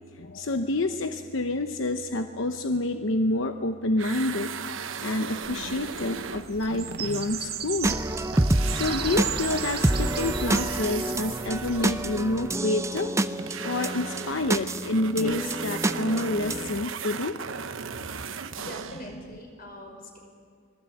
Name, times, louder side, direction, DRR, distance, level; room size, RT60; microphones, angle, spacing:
voice 1, 0.2-4.5 5.0-8.0 8.7-13.1 13.6-17.4, left 2 dB, 80° left, 7 dB, 0.9 m, -28 dB
sound 1, 4.0-8.1 8.3-19.1, right 6 dB, 90° right, 1.0 m, -37 dB
sound 2, 5.4-12.0, right 9 dB, 55° right, 1.6 m, -37 dB
sound 3, 7.8-16.8, right 1 dB, 15° right, 0.6 m, -28 dB
voice 2, 18.2-20.2, equal, 50° left, 2 dB, 5.5 m, -43 dB
25.0 x 19.5 x 8.5 m, 2.1 s
head